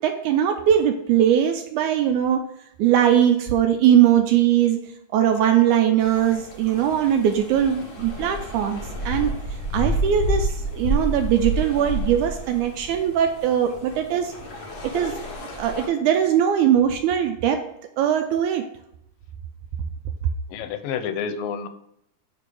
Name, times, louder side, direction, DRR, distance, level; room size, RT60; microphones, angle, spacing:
voice 1, 0.0-2.4 2.8-4.8 5.1-8.8 9.1-9.3 9.7-14.3 14.8-15.2 15.6-17.6 18.0-18.6, right 9 dB, 80° right, 6 dB, 1.8 m, -20 dB
sound 1, 6.0-15.9, right 1 dB, 55° left, 2.8 m, -30 dB
voice 2, 20.5-21.7, left 7 dB, 90° left, 9 dB, 2.4 m, -29 dB
8.1 x 3.4 x 5.3 m, 0.76 s
omnidirectional pair, 3.9 m